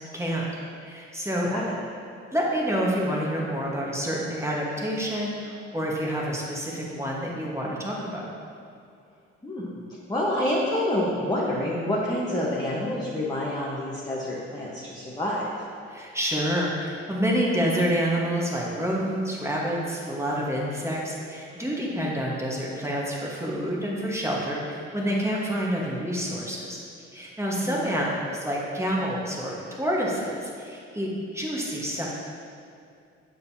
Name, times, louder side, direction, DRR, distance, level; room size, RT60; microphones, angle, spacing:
voice 1, 0.1-0.4 0.8-1.5 2.3-8.3 15.9-26.8 27.1-32.1, equal, 10° right, -4 dB, 1.4 m, -28 dB
voice 2, 1.4-1.7 9.4-9.7 10.1-15.5 27.7-27.9, left 1 dB, 15° left, -6 dB, 1.1 m, -27 dB
6.8 x 5.2 x 2.8 m, 2.4 s
supercardioid pair, 55°, 30 cm